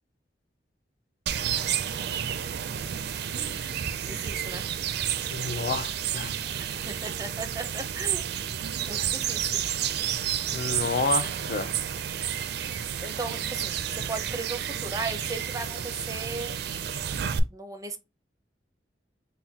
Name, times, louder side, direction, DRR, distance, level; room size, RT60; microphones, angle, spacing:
sound 1, 1.3-17.4, right 9 dB, 65° right, 0.4 m, -31 dB
voice 1, 4.0-4.6 6.5-8.4 8.9-9.6 13.0-16.8 17.5-18.0, right 3 dB, 20° right, 0.6 m, -36 dB
voice 2, 5.3-6.3 10.5-11.7, left 4 dB, 55° left, 0.4 m, -29 dB
5.8 x 2.2 x 2.8 m
head